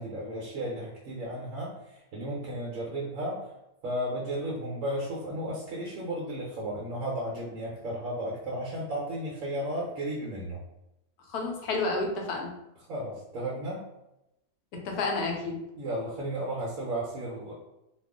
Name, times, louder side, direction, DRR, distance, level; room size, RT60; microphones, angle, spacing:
voice 1, 0.0-3.5 3.8-10.6 12.9-13.8 15.8-17.5, right 1 dB, 65° right, -4 dB, 1.1 m, -34 dB
voice 2, 11.3-12.5 14.7-15.6, left 3 dB, 85° left, 1 dB, 1.2 m, -30 dB
2.9 x 2.4 x 3.6 m, 0.89 s
omnidirectional pair, 1.6 m